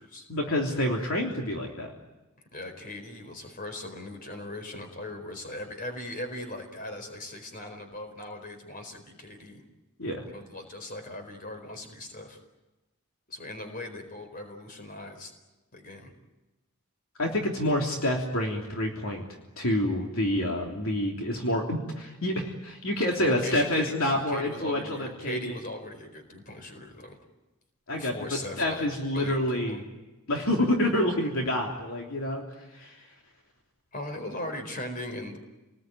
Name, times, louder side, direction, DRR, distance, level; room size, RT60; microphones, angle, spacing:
voice 1, 0.3-1.9 10.0-10.2 17.2-19.2 19.6-25.6 27.9-29.8 30.3-32.4 32.7-33.1, left 1 dB, 65° left, 0 dB, 3.3 m, -28 dB
voice 2, 2.5-9.6 10.3-12.4 13.3-15.3 15.7-16.1 23.2-27.2 27.9-28.9 29.1-29.8 33.9-35.4, left 1 dB, 40° left, 6 dB, 4.4 m, -39 dB
28.5 x 20.0 x 9.3 m, 1.1 s
head